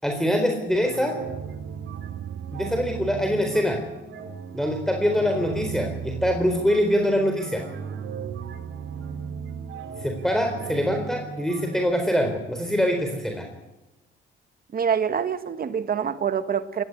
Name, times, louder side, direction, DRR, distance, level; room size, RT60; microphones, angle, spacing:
voice 1, 0.0-1.1 2.5-3.8 4.5-7.6 10.0-13.5, equal, ahead, 4.0 m, -24 dB
sound 1, 0.8-11.9, right 6 dB, 80° right, 3.3 m, -36 dB
voice 2, 14.7-16.8, right 7 dB, 50° right, 1.5 m, -25 dB
20.0 x 17.0 x 9.7 m
cardioid pair, 90°, 20 cm